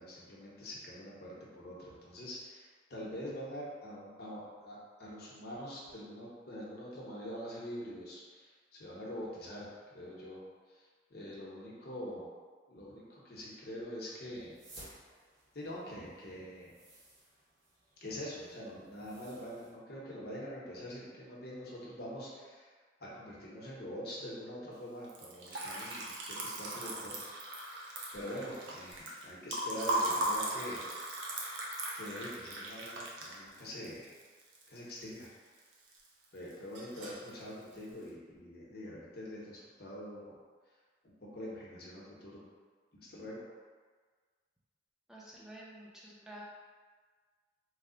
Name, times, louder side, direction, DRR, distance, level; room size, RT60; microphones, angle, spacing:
voice 1, 0.0-8.5 8.8-9.7 9.9-10.4 10.7-10.8 11.1-12.3 12.7-14.6 15.5-16.7 18.0-22.7 23.0-27.1 27.6-30.9 31.9-34.1 34.7-35.3 36.3-40.3 41.3-42.4 43.0-43.4, equal, 55° left, -6 dB, 0.8 m, -44 dB
sound 1, 14.3-19.7, right 1 dB, 60° right, 1.1 m, -58 dB
Liquid, 25.0-35.2 35.6-36.2 36.5-37.3, right 1 dB, 80° right, 0.6 m, -38 dB
voice 2, 45.1-46.4, right 1 dB, 5° right, -6 dB, 0.5 m, -50 dB
3.2 x 2.1 x 3.7 m, 1.5 s
head